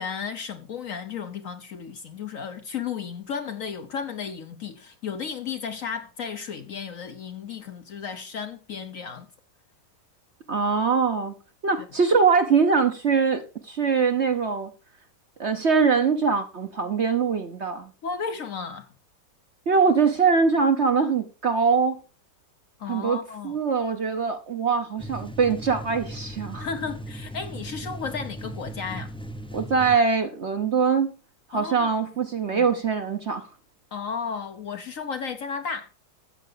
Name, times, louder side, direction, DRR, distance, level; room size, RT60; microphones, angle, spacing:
voice 1, 0.0-9.3 18.0-18.9 22.8-23.6 26.6-29.1 31.5-31.9 32.5-32.7 33.9-35.9, left 6 dB, 60° left, 1.0 m, -34 dB
voice 2, 10.5-11.3 11.6-14.7 15.4-17.9 19.7-22.0 22.9-26.7 29.5-31.1 31.5-33.5, right 5 dB, 50° right, 0.9 m, -22 dB
sound 1, 25.0-30.0, right 1 dB, 5° left, 0.4 m, -37 dB
13.0 x 7.9 x 3.9 m
omnidirectional pair, 1.9 m